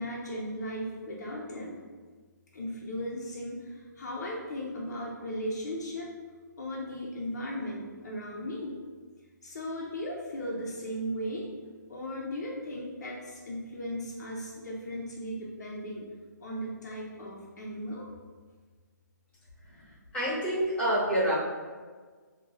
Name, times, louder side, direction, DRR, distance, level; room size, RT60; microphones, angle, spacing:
voice 1, 0.0-1.8 2.5-6.1 6.6-8.8 9.4-11.5 11.9-16.1 16.4-18.1 19.7-19.9, equal, 60° left, -3 dB, 0.7 m, -37 dB
voice 2, 20.1-21.3, right 1 dB, 10° left, -9 dB, 1.3 m, -27 dB
3.8 x 2.3 x 2.5 m, 1.5 s
hypercardioid pair, 155°, 10 cm